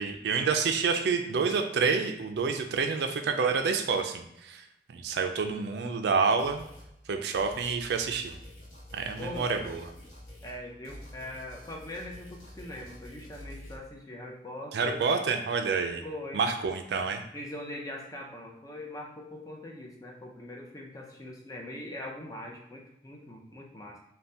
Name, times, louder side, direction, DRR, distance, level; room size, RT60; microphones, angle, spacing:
voice 1, 0.0-6.6 7.1-8.4 8.9-9.9 14.7-16.0 16.3-17.2, right 5 dB, 70° right, 6 dB, 0.3 m, -28 dB
sound 1, 6.4-6.9 7.3-10.6 10.8-13.8, left 1 dB, 90° left, 1.0 m, -48 dB
voice 2, 9.2-9.7 10.4-15.0 16.0-16.4 17.3-24.0, left 1 dB, 20° left, 0 dB, 0.4 m, -42 dB
3.2 x 2.1 x 2.6 m, 0.79 s
head